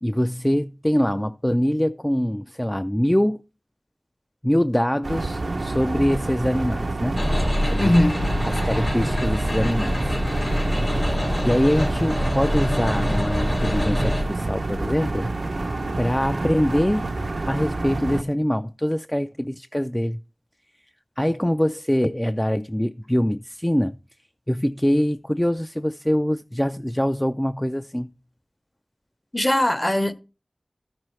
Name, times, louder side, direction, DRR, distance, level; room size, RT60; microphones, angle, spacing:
voice 1, 0.0-3.4 4.4-7.2 7.6-7.9 8.4-10.1 11.4-15.3 16.0-17.1 17.5-20.2 21.2-24.0 24.5-28.1, equal, 10° left, 0.4 m, -23 dB
sound 1, 5.0-18.2, right 2 dB, 85° right, 0.6 m, -28 dB
sound 2, 7.1-14.2, left 1 dB, 65° left, 3.5 m, -25 dB
voice 2, 7.8-8.3 29.3-30.1, left 1 dB, 25° left, 0.8 m, -20 dB
14.0 x 6.0 x 3.2 m
wide cardioid pair, 45°, 0 cm